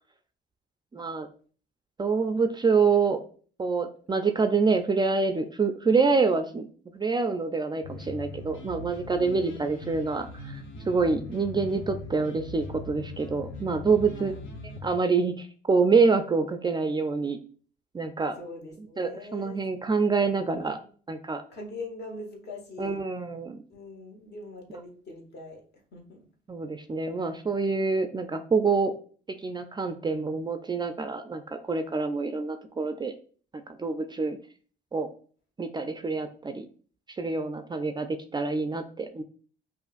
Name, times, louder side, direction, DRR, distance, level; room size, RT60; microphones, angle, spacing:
voice 1, 0.9-1.3 2.0-3.2 3.6-6.7 6.9-14.3 14.8-17.4 17.9-18.4 19.0-20.8 21.1-21.4 22.8-23.6 26.5-28.9 29.4-33.1 33.5-34.4 34.9-35.1 35.6-36.7 37.2-39.2, right 4 dB, 20° right, 7 dB, 0.3 m, -26 dB
sound 1, 7.8-14.9, left 3 dB, 80° left, 0.8 m, -40 dB
voice 2, 9.2-9.7 14.1-14.4 18.4-19.9 20.5-20.7 21.5-23.0 23.7-25.6 25.9-26.2, left 2 dB, 55° left, 1 dB, 1.3 m, -42 dB
5.2 x 2.5 x 2.5 m, 0.43 s
cardioid pair, 90°, 20 cm